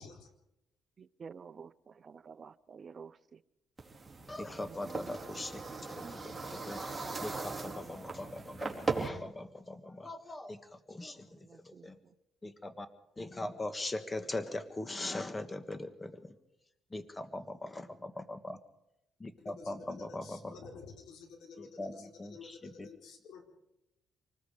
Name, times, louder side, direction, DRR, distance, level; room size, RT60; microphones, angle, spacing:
voice 1, 1.2-3.1 4.6-5.5 11.5-11.9, right 6 dB, 45° right, 0.7 m, -50 dB
sound 1, 3.8-9.1, right 4 dB, 15° right, 4.2 m, -39 dB
voice 2, 4.3-5.6 5.9-10.6 10.9-11.2 11.7-11.9 12.4-12.9 13.2-16.1 16.9-18.6 19.2-20.5 21.8-21.9 22.2-22.3 22.8-22.9, left 2 dB, 20° left, 1.6 m, -40 dB
voice 3, 19.4-23.4, left 4 dB, 80° left, 4.4 m, -51 dB
26.5 x 20.0 x 5.1 m
cardioid pair, 90°, 0 cm